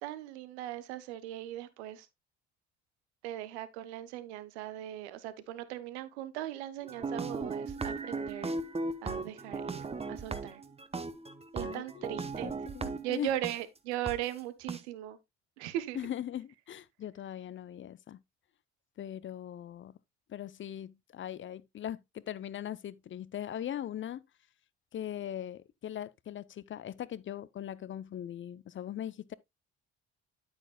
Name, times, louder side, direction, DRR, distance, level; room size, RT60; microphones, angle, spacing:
voice 1, 0.0-2.1 3.2-8.5 9.0-10.6 11.5-12.5 13.0-15.2 15.6-16.0, right 13 dB, 80° right, 0.9 m, -38 dB
sound 1, 6.8-13.6 14.1-14.2 14.7-14.8, right 3 dB, 20° right, 0.9 m, -37 dB
voice 2, 11.6-12.1 12.4-13.3 15.9-18.2 19.0-19.9 20.3-24.2 24.9-29.3, left 10 dB, 40° left, 0.5 m, -40 dB
8.9 x 8.7 x 2.2 m
hypercardioid pair, 55°, 33 cm